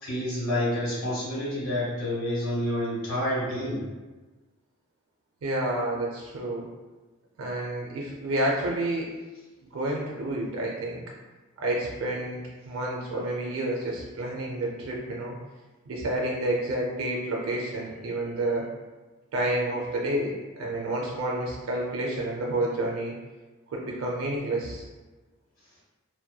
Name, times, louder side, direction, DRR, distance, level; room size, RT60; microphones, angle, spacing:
voice 1, 0.0-3.8, left 1 dB, 70° left, -7 dB, 1.2 m, -28 dB
voice 2, 5.4-6.6 7.4-9.1 9.6-11.0 11.6-12.4 12.7-15.4 15.9-18.7 19.3-23.1 23.7-24.9, right 1 dB, 70° right, -2 dB, 0.4 m, -29 dB
2.7 x 2.1 x 2.2 m, 1.2 s
head